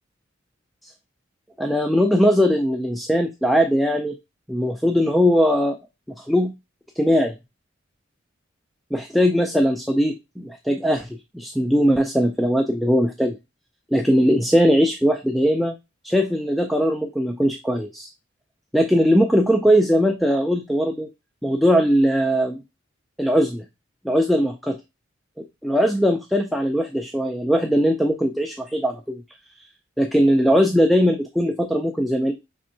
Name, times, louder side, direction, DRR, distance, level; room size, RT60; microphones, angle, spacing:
voice 1, 1.6-4.2 4.5-5.8 6.2-6.5 7.0-7.4 8.9-13.4 13.9-15.7 16.0-18.1 18.7-21.1 21.4-22.6 23.2-23.6 24.0-24.8 25.6-29.2 29.6-29.7 30.0-32.3, equal, ahead, 4 dB, 0.3 m, -20 dB
5.3 x 3.4 x 2.7 m, 0.24 s
head